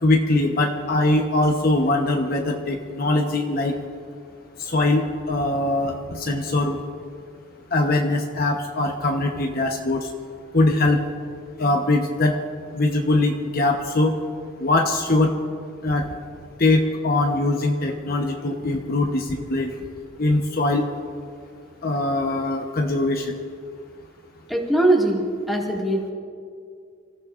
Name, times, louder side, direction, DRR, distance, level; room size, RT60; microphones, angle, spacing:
voice 1, 0.0-3.7 4.6-6.8 7.7-10.1 10.5-11.0 11.6-12.3 12.7-14.2 14.6-15.3 15.8-16.1 16.6-19.7 20.2-20.9 21.8-23.3, left 2 dB, 45° left, 2 dB, 1.0 m, -22 dB
voice 2, 24.5-26.1, right 1 dB, ahead, -2 dB, 2.0 m, -21 dB
28.0 x 15.0 x 2.5 m, 2.2 s
head